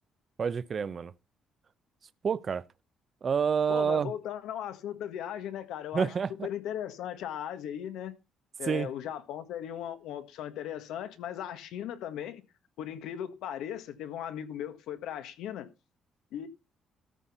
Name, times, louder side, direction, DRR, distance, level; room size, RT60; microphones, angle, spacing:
voice 1, 0.4-1.1 2.2-2.6 3.2-4.1 5.9-6.5 8.7-8.9, right 6 dB, 40° right, 0.7 m, -28 dB
voice 2, 3.7-6.1 6.4-8.2 8.6-12.4 12.8-15.7 16.3-16.5, left 10 dB, 85° left, 1.5 m, -37 dB
13.5 x 6.1 x 5.5 m
cardioid pair, 110°, 0 cm